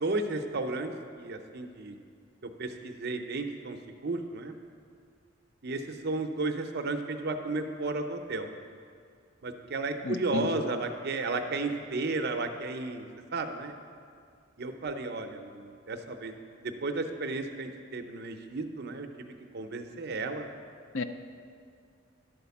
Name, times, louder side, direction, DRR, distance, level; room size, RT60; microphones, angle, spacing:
voice 1, 0.0-0.9 1.2-1.9 2.4-4.5 5.6-8.5 9.4-13.1 13.3-13.7 14.6-16.3 16.8-19.1 19.5-20.4, right 3 dB, 50° right, 5 dB, 0.6 m, -33 dB
voice 2, 10.0-10.5 20.9-21.0, left 4 dB, 60° left, 8 dB, 0.5 m, -32 dB
11.5 x 4.2 x 7.0 m, 2.3 s
head